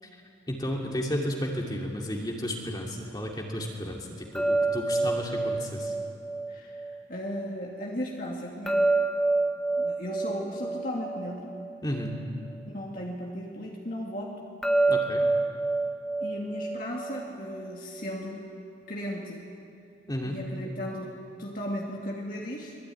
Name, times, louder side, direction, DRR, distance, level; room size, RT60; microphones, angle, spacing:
voice 1, 0.5-5.9 11.8-12.1 14.9-15.2 20.1-20.3, equal, 20° left, -1 dB, 2.6 m, -32 dB
sound 1, 4.3-7.4 8.7-12.2 14.6-17.7, right 2 dB, 5° left, 1.2 m, -28 dB
voice 2, 6.5-8.8 9.8-11.6 12.7-14.3 16.2-18.4 18.9-19.4 20.3-21.1 21.4-22.8, equal, 45° left, -2 dB, 2.6 m, -36 dB
25.0 x 21.5 x 9.6 m, 2.5 s
head